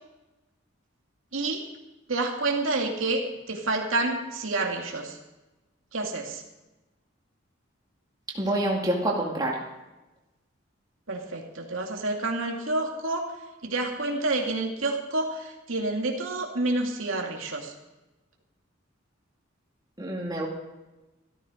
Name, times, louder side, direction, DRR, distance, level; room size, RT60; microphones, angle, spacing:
voice 1, 1.3-1.7 2.1-5.2 5.9-6.4 11.1-13.3 13.6-17.7, right 2 dB, 85° right, 1 dB, 2.3 m, -29 dB
voice 2, 8.3-9.6 20.0-20.5, right 1 dB, 20° right, -2 dB, 2.3 m, -27 dB
14.5 x 13.0 x 5.1 m, 1.0 s
head